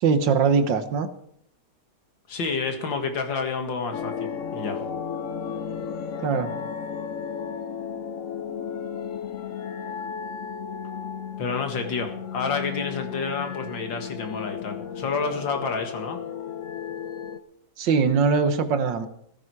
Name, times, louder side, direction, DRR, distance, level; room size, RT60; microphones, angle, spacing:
voice 1, 0.0-1.1 6.2-6.5 17.8-19.1, right 5 dB, 75° right, 10 dB, 1.8 m, -21 dB
voice 2, 2.3-4.8 11.4-16.2, left 4 dB, 85° left, 5 dB, 2.6 m, -29 dB
sound 1, 3.9-17.4, left 7 dB, 50° left, 1.1 m, -34 dB
16.0 x 14.0 x 4.8 m, 0.71 s
omnidirectional pair, 2.0 m